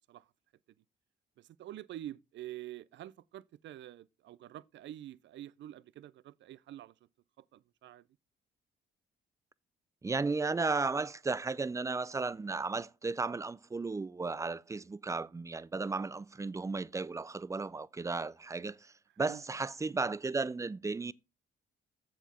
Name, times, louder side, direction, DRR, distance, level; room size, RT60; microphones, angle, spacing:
voice 1, 1.4-6.9 7.4-8.1 19.2-19.4, right 13 dB, 70° right, 0.5 m, -47 dB
voice 2, 10.0-21.1, right 3 dB, 15° right, 0.4 m, -34 dB
7.7 x 7.3 x 4.2 m
cardioid pair, 90°, 20 cm